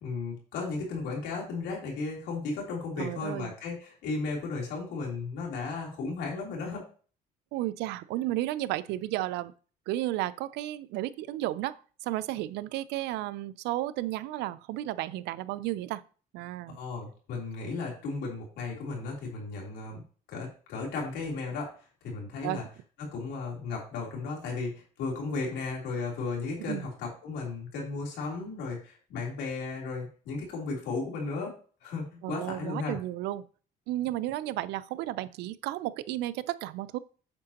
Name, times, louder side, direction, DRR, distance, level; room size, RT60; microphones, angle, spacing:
voice 1, 0.0-6.9 16.7-20.0 20.3-22.6 23.0-33.0, left 3 dB, 85° left, -2 dB, 3.3 m, -35 dB
voice 2, 3.0-3.5 7.5-9.5 9.9-16.0 16.3-16.8 22.4-22.6 26.6-26.9 32.2-33.4 33.9-37.0, right 15 dB, 85° right, 16 dB, 0.5 m, -33 dB
8.8 x 6.4 x 2.9 m, 0.40 s
cardioid pair, 110°, 17 cm